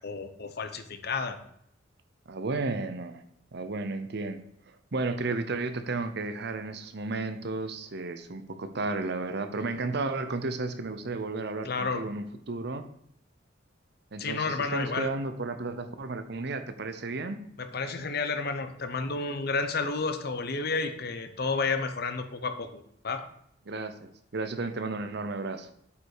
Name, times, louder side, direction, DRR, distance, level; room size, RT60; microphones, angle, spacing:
voice 1, 0.0-1.4 11.6-12.1 14.2-15.1 17.6-22.7 23.0-23.3, left 4 dB, 55° left, 9 dB, 0.8 m, -31 dB
voice 2, 2.3-3.2 3.5-4.4 4.7-12.8 14.1-17.4 23.7-25.7, right 3 dB, 60° right, 10 dB, 0.8 m, -33 dB
8.0 x 5.4 x 4.9 m, 0.71 s
head